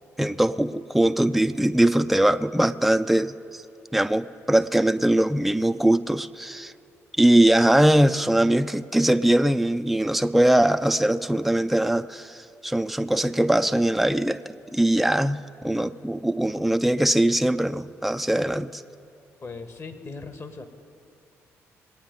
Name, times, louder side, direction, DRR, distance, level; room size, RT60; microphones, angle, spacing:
voice 1, 0.2-3.6 3.9-6.7 7.2-18.8, right 1 dB, ahead, 11 dB, 0.4 m, -21 dB
voice 2, 19.4-20.7, left 4 dB, 40° left, 7 dB, 1.5 m, -38 dB
21.0 x 8.7 x 5.3 m, 2.6 s
hypercardioid pair, 45°, 7 cm